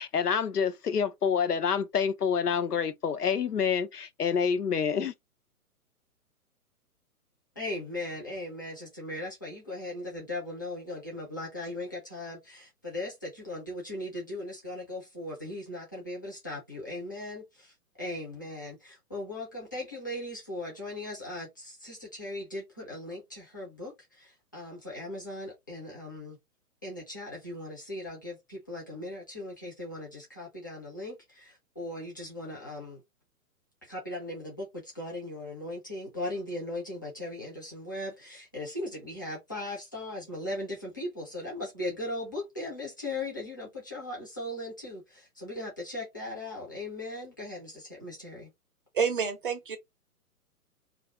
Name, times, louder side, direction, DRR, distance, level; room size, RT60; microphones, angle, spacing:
voice 1, 0.0-5.1, left 7 dB, 80° left, 0.6 m, -27 dB
voice 2, 7.6-26.4 26.8-33.0 33.8-48.5, left 1 dB, 15° left, 0.4 m, -38 dB
voice 3, 48.9-49.8, right 6 dB, 35° right, 0.5 m, -28 dB
2.5 x 2.3 x 3.5 m
figure-of-eight pair, 125°, 45 cm